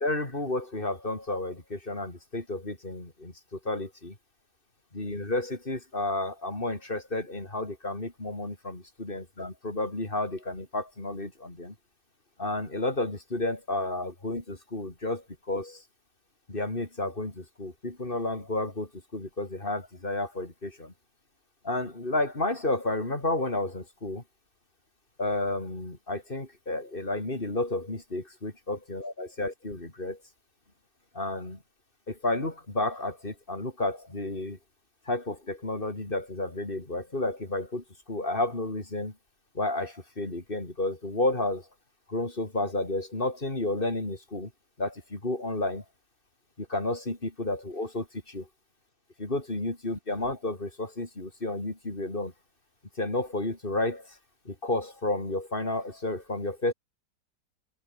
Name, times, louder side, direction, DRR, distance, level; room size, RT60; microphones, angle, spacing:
voice 1, 0.0-4.1 4.9-11.7 12.4-15.8 16.5-20.9 21.6-24.2 25.2-30.2 31.1-31.6 32.1-34.6 35.1-39.1 39.5-41.6 42.1-44.5 44.8-45.8 46.6-48.4 49.2-52.3 53.0-54.1 54.5-56.7, left 2 dB, 30° left, 4.2 m, -31 dB
omnidirectional pair, 1.9 m